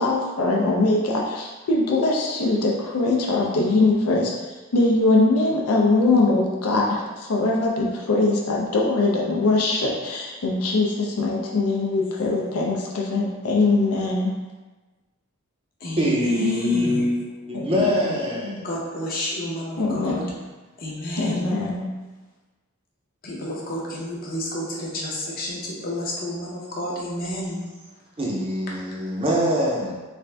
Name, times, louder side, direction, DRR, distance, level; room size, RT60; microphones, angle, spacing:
voice 1, 0.0-4.3 4.7-14.3 17.5-17.9 19.8-20.3 21.2-21.9, left 2 dB, 80° left, -2 dB, 0.5 m, -22 dB
voice 2, 12.0-12.4 15.8-17.1 18.6-20.2 20.8-21.5 23.2-27.6, left 1 dB, 40° left, -4 dB, 0.7 m, -31 dB
voice 3, 16.0-18.7 28.2-30.0, left 1 dB, 25° right, -3 dB, 0.5 m, -23 dB
3.3 x 2.5 x 3.3 m, 1.2 s
head